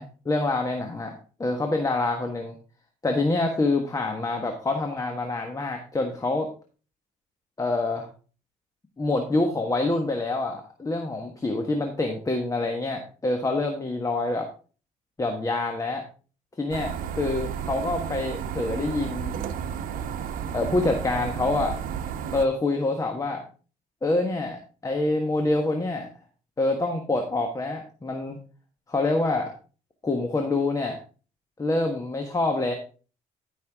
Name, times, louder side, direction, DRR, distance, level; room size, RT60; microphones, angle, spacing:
voice 1, 0.0-2.6 3.0-6.5 7.6-8.1 9.0-14.5 15.2-16.1 16.6-19.4 20.5-21.8 22.3-23.4 24.0-26.1 26.6-28.4 28.9-29.5 30.0-31.0 31.6-32.7, left 2 dB, 25° left, 4 dB, 1.4 m, -26 dB
sound 1, 16.7-22.5, right 8 dB, 80° right, 0.8 m, -32 dB
12.0 x 5.7 x 3.6 m, 0.37 s
cardioid pair, 95°, 14 cm